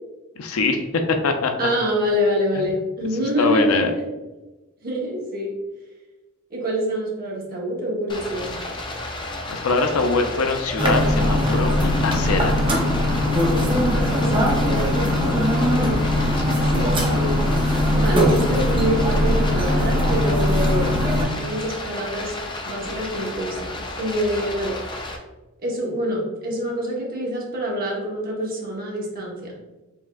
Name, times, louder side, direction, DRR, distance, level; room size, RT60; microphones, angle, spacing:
voice 1, 0.4-1.7 2.6-2.7 3.4-3.9 9.5-12.6 16.4-16.7, left 3 dB, 75° left, 5 dB, 0.5 m, -23 dB
voice 2, 1.6-4.0 4.8-5.6 6.5-8.5 14.1-15.3 15.6-16.0 16.7-17.7 17.9-22.3 22.6-24.7 25.6-29.5, equal, 45° right, -3 dB, 1.1 m, -26 dB
Stream, 8.1-25.2, left 2 dB, 20° left, 0.4 m, -33 dB
sound 1, 10.8-21.3, left 1 dB, 25° right, 0.6 m, -20 dB
4.6 x 3.4 x 2.3 m, 1.1 s
head